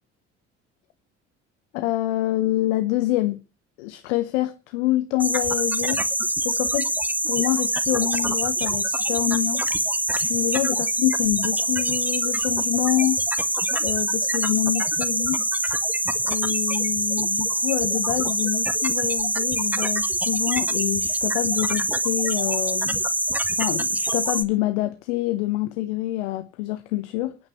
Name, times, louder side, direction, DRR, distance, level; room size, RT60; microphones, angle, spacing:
voice 1, 1.7-3.4 3.8-6.1 6.4-6.9 7.3-9.6 10.1-13.5 13.8-15.5 16.2-23.0 23.5-27.4, left 16 dB, 70° left, 1.0 m, -26 dB
sound 1, 5.2-24.4, right 1 dB, 5° right, 1.4 m, -24 dB
26.0 x 9.7 x 3.1 m
figure-of-eight pair, 55°, 37 cm